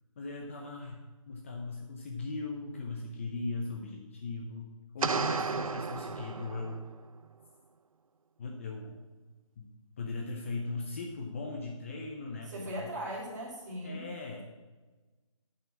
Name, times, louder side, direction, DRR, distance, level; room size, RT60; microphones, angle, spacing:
voice 1, 0.2-6.9 8.4-9.0 9.6-9.7 10.0-12.5 13.8-14.4, left 3 dB, 25° left, 1 dB, 0.7 m, -39 dB
sound 1, 5.0-6.9, right 4 dB, 85° right, 0.6 m, -33 dB
voice 2, 12.5-14.1, equal, 30° right, -3 dB, 2.7 m, -38 dB
9.2 x 5.5 x 7.2 m, 1.2 s
figure-of-eight pair, 160°, 17 cm